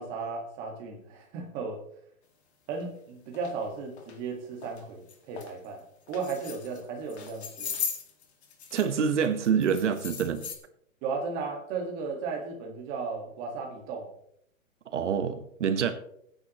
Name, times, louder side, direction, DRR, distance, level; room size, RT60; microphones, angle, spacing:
voice 1, 0.0-1.8 2.7-5.8 6.1-7.7 11.0-14.1, right 4 dB, 20° right, 1 dB, 1.7 m, -35 dB
sound 1, 2.7-2.8 3.3-3.5 4.0-4.1 4.6-4.8 5.1-5.5 6.1-6.8 7.1-9.0 9.2-10.5, left 7 dB, 50° left, 2.1 m, -38 dB
voice 2, 8.7-10.5 14.9-15.9, right 7 dB, 60° right, 9 dB, 1.2 m, -26 dB
21.0 x 9.6 x 3.0 m, 0.72 s
hypercardioid pair, 170°, 40 cm